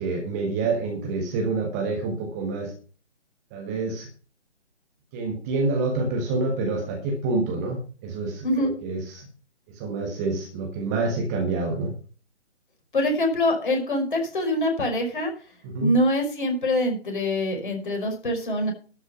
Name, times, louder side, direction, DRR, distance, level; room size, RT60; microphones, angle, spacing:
voice 1, 0.0-2.7 3.5-4.1 5.1-9.3 9.7-11.9 15.6-15.9, right 3 dB, 15° right, 3 dB, 1.4 m, -27 dB
voice 2, 12.9-15.3 15.8-18.7, left 1 dB, 45° left, 3 dB, 5.4 m, -24 dB
12.5 x 6.4 x 7.0 m, 0.38 s
figure-of-eight pair, 140°, 34 cm